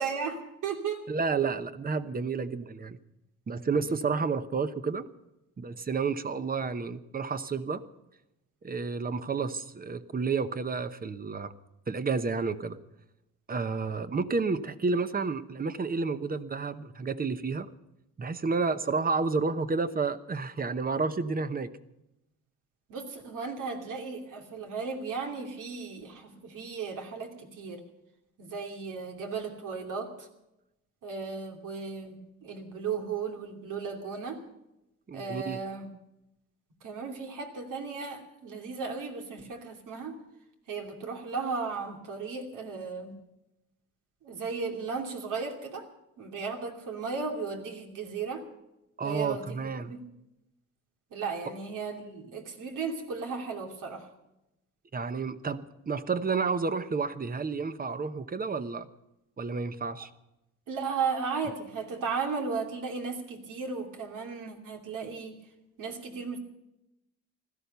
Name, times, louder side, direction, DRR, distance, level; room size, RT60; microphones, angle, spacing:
voice 1, 0.0-1.0 22.9-27.8 28.4-30.3 31.0-32.2 32.4-34.4 35.1-35.9 36.8-40.2 40.7-43.1 44.2-45.9 46.2-48.5 49.0-50.0 51.1-54.1 60.7-65.4 65.8-66.4, right 5 dB, 75° right, 2 dB, 2.9 m, -35 dB
voice 2, 1.1-3.0 3.5-5.0 5.6-7.8 8.6-11.5 11.9-12.8 13.5-17.7 18.2-21.7 35.1-35.6 49.0-49.9 54.9-58.9 59.4-60.1, right 4 dB, 30° right, 11 dB, 1.0 m, -30 dB
16.5 x 13.0 x 6.8 m, 0.89 s
cardioid pair, 95°, 31 cm